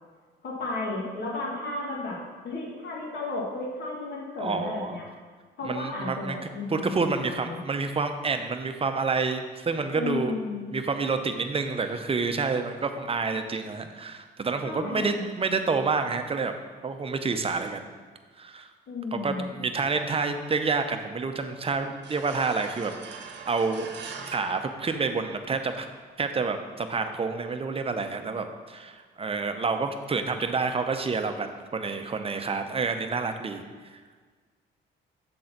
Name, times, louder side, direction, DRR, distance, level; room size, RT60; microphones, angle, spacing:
voice 1, 0.4-2.2 2.4-5.0 5.6-7.6 9.9-10.8 14.6-15.3 18.9-19.5, left 2 dB, 60° left, -3 dB, 1.8 m, -33 dB
voice 2, 4.4-5.0 5.6-6.4 6.7-10.4 10.7-16.5 16.8-17.9 18.4-18.7 19.1-23.9 24.3-25.9 26.2-33.6, right 4 dB, 30° right, 7 dB, 0.7 m, -28 dB
sound 1, 22.0-25.6, right 5 dB, 60° right, 0.9 m, -42 dB
7.7 x 3.9 x 5.8 m, 1.5 s
cardioid pair, 90°, 20 cm